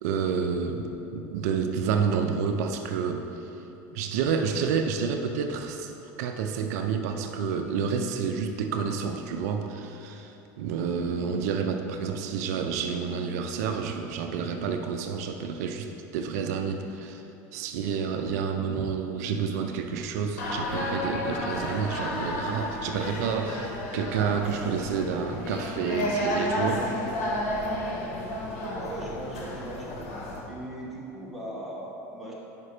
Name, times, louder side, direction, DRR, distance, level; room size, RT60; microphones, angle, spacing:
voice 1, 0.0-3.3 3.9-5.9 6.2-17.2 17.5-26.9, right 6 dB, 80° right, 5 dB, 0.5 m, -29 dB
sound 1, 20.4-30.4, left 1 dB, 80° left, 1.4 m, -32 dB
voice 2, 28.7-30.0 30.4-32.3, right 1 dB, ahead, -6 dB, 1.3 m, -38 dB
5.5 x 5.0 x 4.9 m, 3.0 s
supercardioid pair, 135°, 9 cm